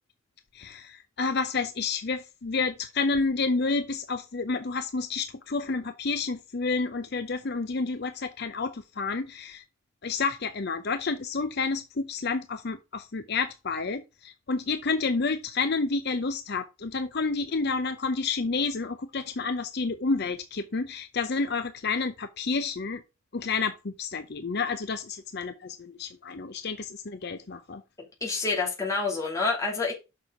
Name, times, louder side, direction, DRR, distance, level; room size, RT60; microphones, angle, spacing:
voice 1, 0.5-9.6 10.0-23.0 23.3-27.8, left 4 dB, 50° left, 0.6 m, -30 dB
voice 2, 28.2-29.9, left 4 dB, 15° left, 2.7 m, -27 dB
6.7 x 6.3 x 4.9 m
head